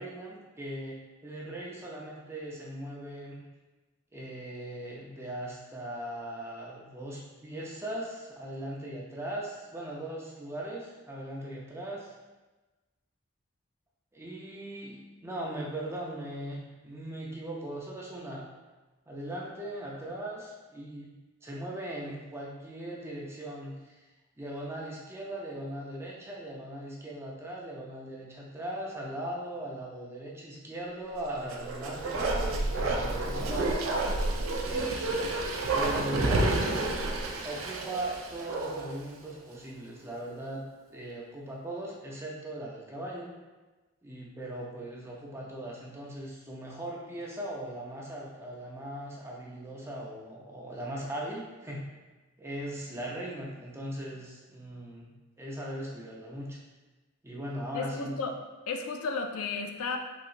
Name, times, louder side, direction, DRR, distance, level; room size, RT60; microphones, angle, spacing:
voice 1, 0.0-3.4 4.1-12.1 14.1-18.5 19.1-21.1 21.4-24.0 24.4-33.8 34.7-35.1 35.7-36.9 37.4-40.6 40.9-43.3 44.0-51.9 52.4-55.1 55.4-56.6 57.2-58.3, right 1 dB, 10° right, -3 dB, 0.4 m, -39 dB
Bark, 31.4-39.0 39.3-39.4, right 2 dB, 70° right, 0.4 m, -30 dB
voice 2, 57.7-58.3 58.7-60.0, left 4 dB, 90° left, 5 dB, 0.4 m, -33 dB
3.8 x 2.9 x 2.4 m, 1.2 s
head